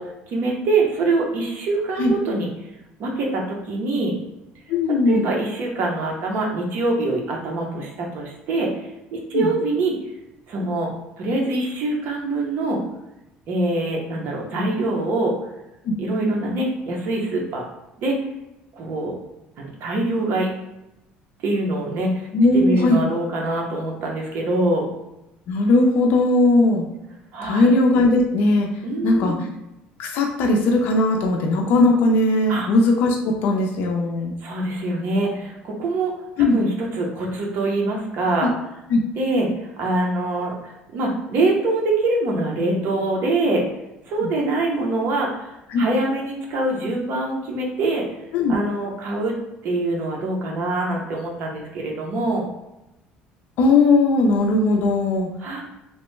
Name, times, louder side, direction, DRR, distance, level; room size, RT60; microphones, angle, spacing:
voice 1, 0.0-2.5 3.0-4.1 5.1-8.7 9.1-10.0 10.5-10.9 11.2-12.8 13.5-15.3 16.0-17.7 18.0-18.2 18.7-19.1 19.6-20.5 21.4-22.3 22.5-24.9 27.3-27.7 28.8-29.4 32.5-32.7 34.4-36.1 36.5-38.5 39.2-43.6 44.1-48.1 48.5-49.4 49.6-52.5 55.4-55.6, right 2 dB, 60° right, 0 dB, 0.8 m, -24 dB
voice 2, 4.7-5.3 9.3-9.5 15.9-16.0 22.3-23.0 25.5-26.8 27.4-28.7 29.0-29.3 30.0-34.3 36.4-36.6 38.4-38.5 38.9-39.0 44.2-44.3 45.7-45.8 48.3-48.5 53.6-55.3, left 2 dB, 65° left, 1 dB, 0.4 m, -18 dB
3.0 x 2.1 x 3.1 m, 0.93 s
cardioid pair, 125°, 4 cm